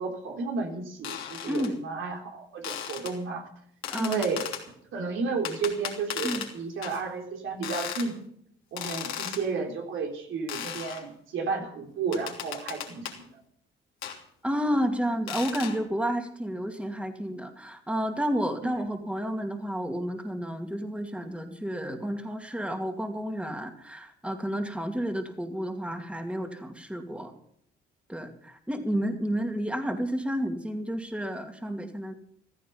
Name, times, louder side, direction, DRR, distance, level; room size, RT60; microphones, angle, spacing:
voice 1, 0.0-3.5 3.9-4.5 4.9-8.2 8.7-13.4, right 4 dB, 80° right, 2 dB, 3.7 m, -32 dB
sound 1, 1.0-1.7 2.6-3.1 3.8-4.6 5.4-6.5 6.8-7.0 7.6-8.1 8.8-9.4 10.5-11.0 12.1-13.2 14.0-14.2 15.3-15.8, left 9 dB, 90° left, 3.2 m, -36 dB
voice 2, 1.5-1.8 3.9-4.3 6.2-6.5 14.4-27.3 28.1-32.1, equal, 5° right, 5 dB, 2.4 m, -31 dB
15.0 x 14.5 x 5.7 m, 0.67 s
cardioid pair, 90°, 20 cm